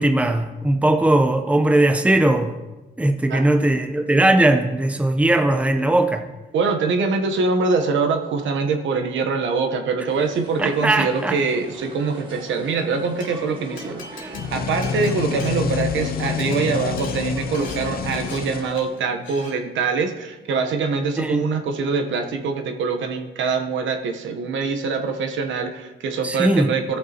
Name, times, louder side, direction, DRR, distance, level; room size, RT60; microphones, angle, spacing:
voice 1, 0.0-2.6 3.0-6.3 10.6-11.4 21.2-21.4 26.2-26.7, right 1 dB, 5° right, 6 dB, 0.7 m, -19 dB
voice 2, 6.5-27.0, right 4 dB, 75° right, 5 dB, 1.0 m, -24 dB
sound 1, 10.1-18.7, right 1 dB, 25° right, 1.7 m, -40 dB
Glass, 13.2-13.3 13.8-16.0 16.3-16.6 17.0-17.2 17.5-17.8 18.1-18.4 18.8-19.0 19.2-19.5, left 3 dB, 70° left, 2.8 m, -40 dB
sound 2, 14.3-19.2, left 7 dB, 50° left, 0.5 m, -28 dB
14.0 x 6.5 x 2.9 m, 1.1 s
cardioid pair, 90°, 20 cm